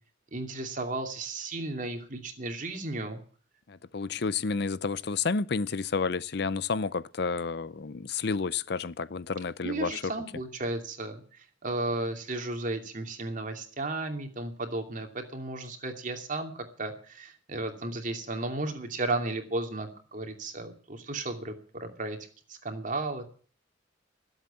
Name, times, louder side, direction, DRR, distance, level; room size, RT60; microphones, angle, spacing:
voice 1, 0.3-3.2 9.6-22.2 22.5-23.3, right 2 dB, 45° right, 2.7 m, -34 dB
voice 2, 3.7-10.1, left 4 dB, 60° left, 0.6 m, -30 dB
20.0 x 8.2 x 7.3 m
head